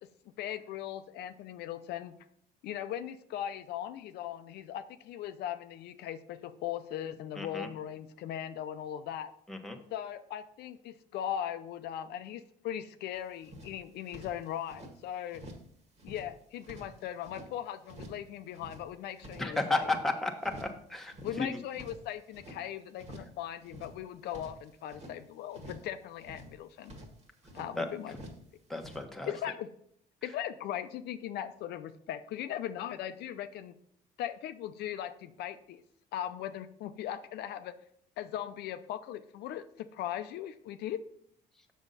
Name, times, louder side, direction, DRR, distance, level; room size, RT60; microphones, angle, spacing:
voice 1, 0.4-2.2 2.6-9.3 9.9-15.4 16.0-19.9 21.2-27.0 27.5-28.2 29.3-29.7 30.2-33.8 34.2-35.8 36.1-37.7 38.2-41.0, left 11 dB, 75° left, 10 dB, 0.5 m, -39 dB
voice 2, 7.4-7.7 9.5-9.8 19.4-21.5 27.7-27.9 28.7-29.3, left 2 dB, ahead, 3 dB, 1.1 m, -33 dB
sound 1, 13.1-13.2 13.4-14.9 15.3-15.7 16.0-17.5 17.9-18.3 18.5-20.1 20.4-20.8 21.1-22.6 23.0-23.4 23.6-25.2 25.5-25.9 26.2-27.7 28.1-28.5 28.7-29.0, equal, 40° right, 1.8 m, -49 dB
7.1 x 6.3 x 4.1 m, 0.68 s
cardioid pair, 110°, 17 cm